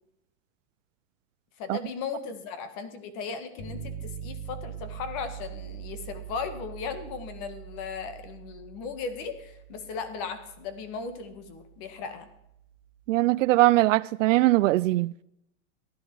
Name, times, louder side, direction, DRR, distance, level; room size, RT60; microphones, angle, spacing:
voice 1, 1.6-12.3, left 5 dB, 40° left, 1.9 m, -37 dB
sound 1, 3.6-13.5, right 9 dB, 75° left, 6.1 m, -43 dB
voice 2, 13.1-15.2, right 18 dB, 75° right, 0.5 m, -21 dB
15.5 x 11.0 x 4.7 m
supercardioid pair, 150°, 38 cm